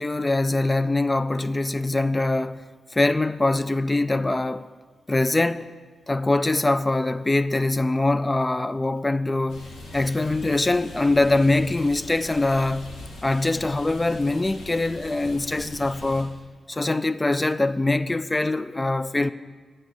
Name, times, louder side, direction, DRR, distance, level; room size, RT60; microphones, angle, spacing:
voice 1, 0.0-4.7 5.1-5.7 6.1-12.9 13.2-16.4 16.7-19.3, left 2 dB, 25° left, 0.4 m, -23 dB
sound 1, 9.5-16.2, left 1 dB, 85° left, 1.7 m, -41 dB
9.8 x 5.5 x 7.1 m
cardioid pair, 60°, 0 cm